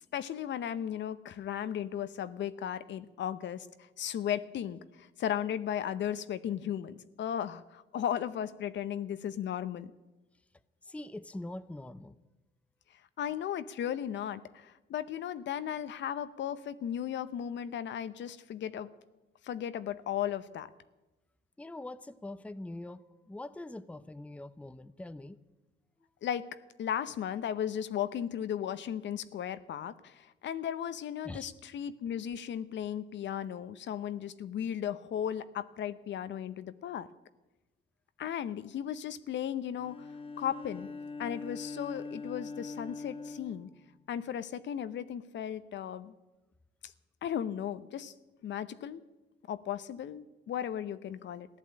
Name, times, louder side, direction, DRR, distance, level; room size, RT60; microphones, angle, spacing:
voice 1, 0.1-9.9 13.2-18.9 19.4-20.7 26.2-26.5 26.8-37.1 38.2-40.1 40.4-40.9 41.2-43.7 44.1-46.1 46.8-46.9 47.2-48.1 48.4-49.0 49.5-51.5, left 9 dB, 65° left, 13 dB, 0.8 m, -36 dB
voice 2, 10.8-12.2 21.6-25.4 31.2-31.5, left 1 dB, 5° left, 13 dB, 0.6 m, -43 dB
Bowed string instrument, 39.8-44.4, left 3 dB, 30° left, 1.1 m, -43 dB
15.0 x 11.0 x 8.6 m, 1.1 s
cardioid pair, 90°, 20 cm